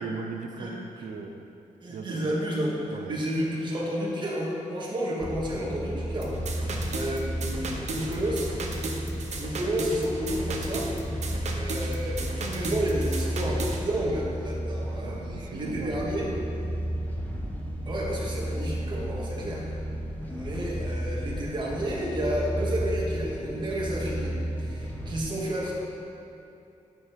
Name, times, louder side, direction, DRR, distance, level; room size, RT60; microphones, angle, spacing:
voice 1, 0.0-1.5 1.9-2.4 2.9-3.2 14.9-15.9 16.2-16.5 19.1-19.3, right 4 dB, 85° right, 5 dB, 0.7 m, -38 dB
voice 2, 1.8-8.5 9.3-16.3 17.8-19.6 20.2-25.7, equal, 35° right, -4 dB, 1.9 m, -31 dB
sound 1, 5.2-25.2, equal, 15° left, 1.1 m, -33 dB
sound 2, 6.2-13.8, right 3 dB, 60° right, 1.0 m, -35 dB
9.7 x 6.9 x 5.3 m, 2.8 s
wide cardioid pair, 135°, 13 cm